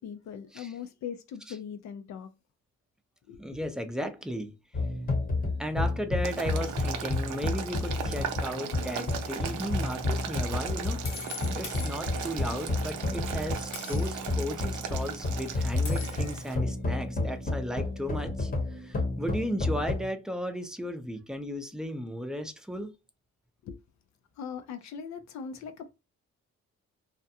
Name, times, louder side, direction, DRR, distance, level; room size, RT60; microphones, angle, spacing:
voice 1, 0.0-2.3 3.3-3.6 23.6-23.8 24.4-25.9, left 7 dB, 65° left, 0.5 m, -40 dB
voice 2, 3.4-4.5 5.6-11.1 11.5-18.5 18.8-22.9, equal, ahead, 0.5 m, -35 dB
sound 1, 4.7-20.1, left 2 dB, 30° left, 0.9 m, -31 dB
Boiling, 6.2-16.5, right 7 dB, 80° right, 0.6 m, -38 dB
sound 2, 9.5-9.7 11.0-12.5 13.7-14.3 15.8-16.5, left 6 dB, 85° left, 1.1 m, -43 dB
2.4 x 2.1 x 2.8 m
cardioid pair, 90°, 30 cm